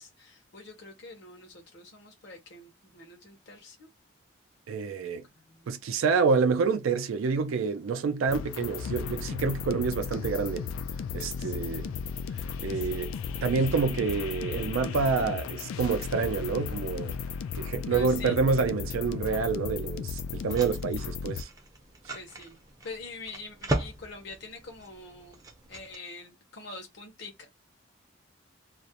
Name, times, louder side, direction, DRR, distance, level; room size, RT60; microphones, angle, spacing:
voice 1, 0.0-3.9 5.0-5.7 11.3-11.8 12.6-12.9 13.6-13.7 17.9-18.4 22.1-22.6 22.8-25.4 25.7-27.5, left 3 dB, 60° left, 0.8 m, -45 dB
voice 2, 4.7-5.2 5.7-10.7 11.1-11.9 12.6-13.1 13.4-17.2 17.6-21.5, right 5 dB, 90° right, 0.4 m, -28 dB
sound 1, 8.3-21.4, left 6 dB, 90° left, 0.3 m, -35 dB
sound 2, 20.1-26.0, right 1 dB, 20° right, 0.5 m, -38 dB
2.4 x 2.0 x 2.8 m
head